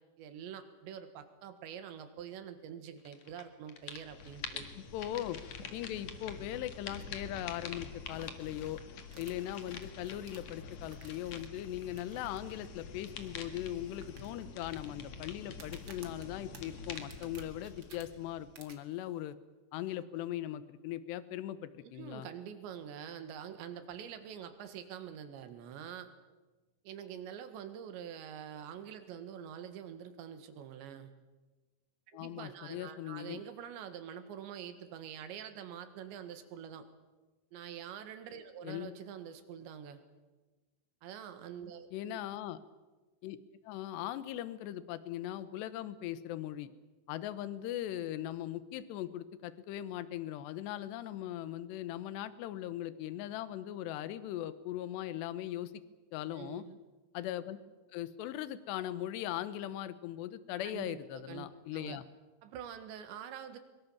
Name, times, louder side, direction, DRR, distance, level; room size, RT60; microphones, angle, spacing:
voice 1, 0.2-4.7 21.8-26.1 26.9-31.1 32.1-36.9 37.5-40.0 41.0-42.2 56.4-56.8 60.6-61.5 61.7-62.0 62.4-63.6, right 9 dB, 85° right, 9 dB, 3.9 m, -46 dB
sound 1, 3.1-3.4 3.7-18.7, left 5 dB, 50° left, 2.2 m, -46 dB
voice 2, 4.8-5.4 5.7-8.8 9.2-19.4 19.7-22.3 32.1-33.4 38.6-38.9 41.9-42.6 43.2-43.4 43.6-46.7 47.1-55.7 56.1-56.6 57.1-57.6 57.9-62.0, left 12 dB, 80° left, 14 dB, 3.1 m, -39 dB
sound 2, 9.1-11.4 12.0-12.4 12.6-12.7 13.3-13.4 14.0-14.8 15.5-18.0 18.5-18.7, right 5 dB, 40° right, 1.8 m, -54 dB
23.0 x 23.0 x 7.3 m, 1.2 s
omnidirectional pair, 5.0 m